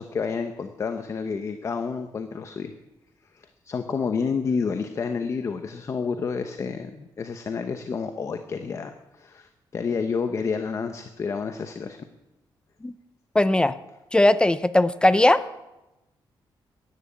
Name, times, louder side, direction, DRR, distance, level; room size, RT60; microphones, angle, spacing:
voice 1, 0.0-2.7 3.3-12.0, left 5 dB, 35° left, 8 dB, 0.9 m, -29 dB
voice 2, 13.3-13.7 14.1-15.4, left 1 dB, 10° left, 14 dB, 0.5 m, -18 dB
14.0 x 11.0 x 8.7 m, 0.98 s
wide cardioid pair, 175°, 9 cm